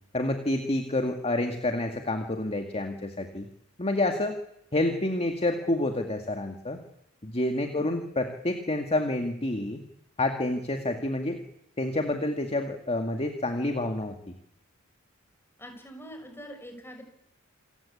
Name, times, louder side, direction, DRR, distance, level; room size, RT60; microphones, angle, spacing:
voice 1, 0.1-3.5 3.8-4.4 4.7-6.8 7.2-9.8 10.2-11.4 11.8-14.2, left 2 dB, 30° left, 5 dB, 2.0 m, -28 dB
voice 2, 7.6-8.0 15.6-17.0, equal, 10° left, 5 dB, 6.2 m, -44 dB
28.0 x 15.5 x 8.6 m, 0.80 s
head